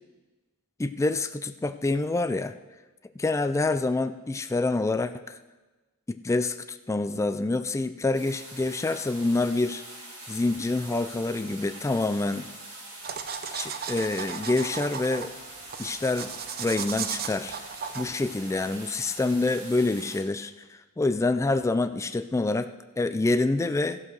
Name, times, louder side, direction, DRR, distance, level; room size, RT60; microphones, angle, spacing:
voice 1, 0.8-2.5 3.2-5.4 6.1-9.8 10.3-12.5 13.5-15.3 15.8-16.3 16.6-17.6 17.9-22.7 23.0-24.0, left 2 dB, 15° left, 10 dB, 0.3 m, -27 dB
sound 1, 8.1-20.2, right 1 dB, 70° right, 4.2 m, -44 dB
sound 2, 13.0-19.2, right 7 dB, 45° right, 0.6 m, -36 dB
14.0 x 5.7 x 6.3 m, 1.2 s
head